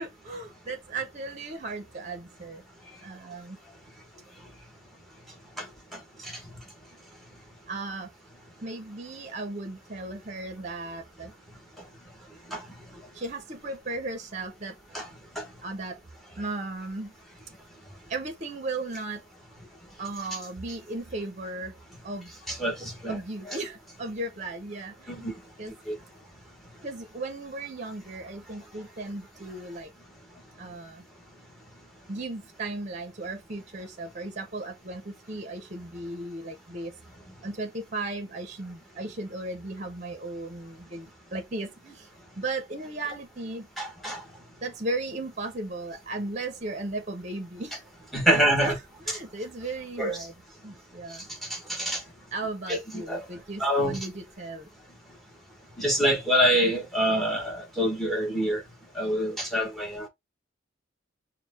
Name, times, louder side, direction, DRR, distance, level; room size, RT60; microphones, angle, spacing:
voice 1, 0.0-2.6 3.0-3.6 7.7-8.1 8.6-11.3 13.1-14.8 15.6-16.0 16.4-17.1 18.1-19.2 20.0-21.8 22.0-22.3 23.1-25.3 25.6-25.7 26.8-29.9 30.6-31.0 32.1-36.9 37.4-42.1 42.4-43.7 44.6-47.8 48.3-50.3 50.6-51.3 52.3-54.7, right 2 dB, 35° right, 0.8 m, -36 dB
voice 2, 22.5-23.2 23.5-23.6 25.1-25.3 25.9-26.0 43.8-44.2 48.1-48.7 50.0-50.2 51.5-52.0 52.7-53.3 53.6-54.0 55.8-58.6 58.9-60.1, equal, ahead, 1.2 m, -26 dB
4.5 x 2.2 x 3.5 m
head